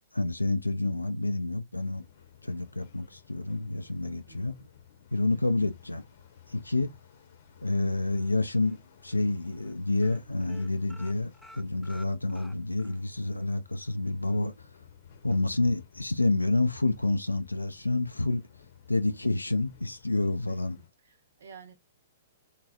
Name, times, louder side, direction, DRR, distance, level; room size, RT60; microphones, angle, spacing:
voice 1, 0.1-2.0 2.4-4.6 5.1-6.0 6.5-6.9 7.6-14.7 15.2-18.5 18.9-20.8, left 2 dB, 85° left, 0.4 m, -28 dB
sound 1, 1.8-20.9, left 8 dB, 50° left, 0.8 m, -55 dB
voice 2, 4.3-4.7 5.3-5.6 20.5-20.6 21.0-21.7, right 6 dB, 60° right, 1.0 m, -51 dB
sound 2, 8.2-8.8 9.1-9.3 9.5-9.7 10.0-13.0 13.4-13.5 13.8-13.9, left 1 dB, ahead, 0.5 m, -52 dB
3.8 x 2.8 x 2.4 m
figure-of-eight pair, 110°, 0 cm